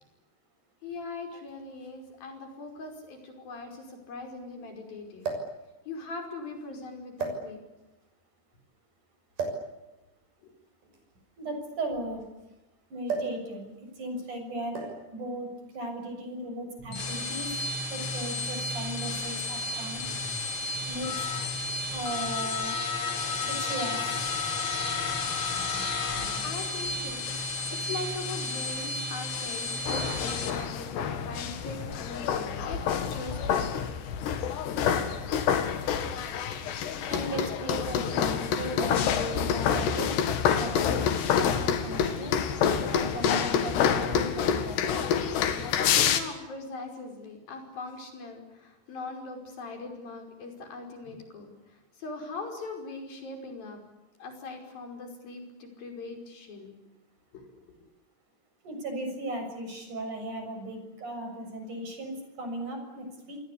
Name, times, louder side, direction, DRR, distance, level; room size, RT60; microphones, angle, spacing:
voice 1, 0.8-5.3 5.9-7.6 10.4-10.5 26.4-27.2 27.6-33.7 46.1-53.8 54.2-56.7 57.3-57.6, left 3 dB, 60° left, 4 dB, 7.0 m, -40 dB
sound 1, 1.5-1.6 2.7-2.8 3.0-3.1 5.2-5.6 6.4-6.6 7.2-7.9 9.4-9.7 10.8-12.5 13.1-13.4 13.7-14.0 14.7-15.1 16.1-16.3, right 4 dB, 65° right, 8.4 m, -34 dB
voice 2, 11.4-12.2 12.9-13.7 14.0-14.8 15.1-17.6 17.9-20.0 20.9-21.1 21.9-22.8 23.4-24.3 37.1-40.2 40.5-41.0 41.4-42.4 42.9-45.1 58.6-63.4, right 1 dB, 45° right, 5 dB, 8.2 m, -36 dB
sound 2, 16.8-30.5, left 3 dB, 30° left, 3.6 m, -32 dB
sound 3, 29.8-46.2, left 8 dB, 80° left, 4.1 m, -27 dB
28.5 x 23.0 x 8.6 m, 1.0 s
omnidirectional pair, 4.7 m